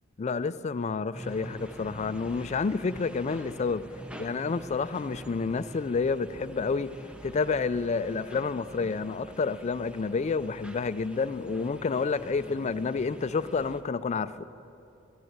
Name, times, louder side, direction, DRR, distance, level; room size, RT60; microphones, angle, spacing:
voice 1, 0.2-3.8 4.2-6.9 7.2-14.3, left 4 dB, 35° left, 0.4 m, -29 dB
sound 1, 1.1-13.8, equal, 5° right, 0.6 m, -45 dB
13.5 x 10.5 x 8.1 m
head